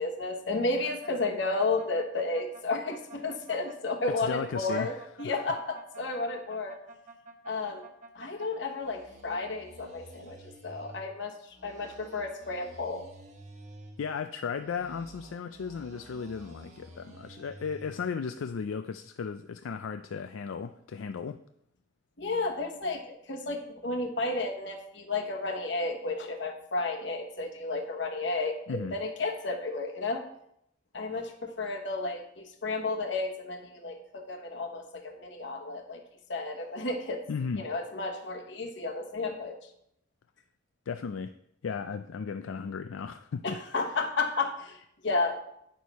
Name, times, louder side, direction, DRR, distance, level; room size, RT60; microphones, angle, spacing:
voice 1, 0.0-6.8 7.5-7.9 8.1-10.4 10.6-13.0 22.2-30.2 30.9-36.0 36.3-37.2 37.6-39.6 43.4-45.4, left 3 dB, 65° left, 3 dB, 1.1 m, -32 dB
sound 1, 0.8-8.5 8.8-11.0 11.5-14.0 14.5-17.9, right 2 dB, 40° right, 1.2 m, -50 dB
voice 2, 4.2-4.9 5.2-5.4 14.0-21.4 28.7-29.0 37.3-37.7 40.9-41.3 41.6-43.6, left 6 dB, 85° left, 9 dB, 0.4 m, -35 dB
9.4 x 6.4 x 4.1 m, 0.74 s
head